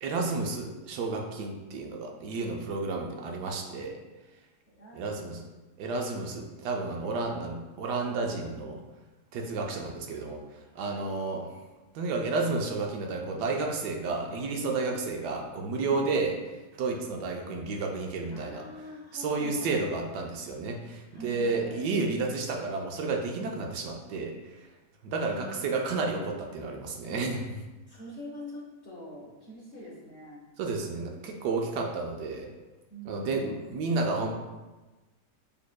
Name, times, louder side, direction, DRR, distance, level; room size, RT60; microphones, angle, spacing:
voice 1, 0.0-4.0 4.9-5.4 5.8-8.8 9.3-10.4 10.7-11.5 11.9-18.6 19.1-24.7 25.0-27.6 30.6-32.5 33.1-34.3, right 3 dB, 75° right, 2 dB, 1.1 m, -31 dB
voice 2, 4.7-5.5 6.2-7.3 9.5-9.9 10.7-11.1 15.9-16.1 18.3-19.9 21.1-21.9 25.1-25.7 27.9-30.5 32.9-33.9, equal, 55° left, -5 dB, 0.8 m, -46 dB
6.8 x 2.9 x 2.2 m, 1.2 s
omnidirectional pair, 1.9 m